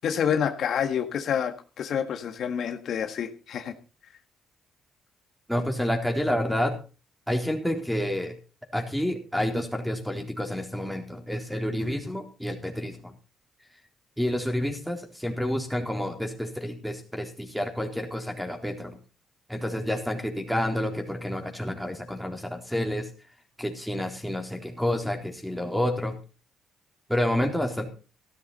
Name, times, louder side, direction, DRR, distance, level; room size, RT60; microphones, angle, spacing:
voice 1, 0.0-3.7, left 8 dB, 65° left, 7 dB, 1.7 m, -28 dB
voice 2, 5.5-6.8 7.3-8.4 8.7-13.1 14.2-19.0 19.5-23.1 23.6-26.2 27.1-27.9, left 1 dB, ahead, 4 dB, 4.0 m, -29 dB
15.0 x 12.0 x 4.3 m, 0.34 s
cardioid pair, 90°, 0 cm